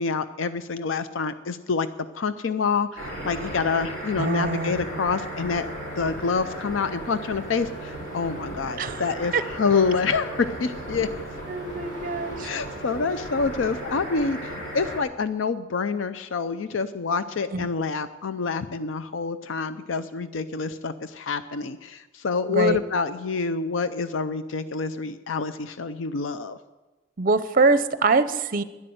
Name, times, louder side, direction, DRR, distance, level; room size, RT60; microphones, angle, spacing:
voice 1, 0.0-1.9 2.1-5.7 5.9-11.1 12.4-26.6, left 5 dB, 80° left, 12 dB, 0.5 m, -27 dB
sound 1, 3.0-15.0, right 1 dB, 45° left, 5.2 m, -35 dB
voice 2, 4.2-4.9 8.8-9.0 9.3-9.4 11.5-12.5 17.5-17.7 22.5-22.8 27.2-28.6, right 3 dB, 45° right, 12 dB, 0.7 m, -23 dB
12.0 x 11.0 x 7.8 m, 1.2 s
head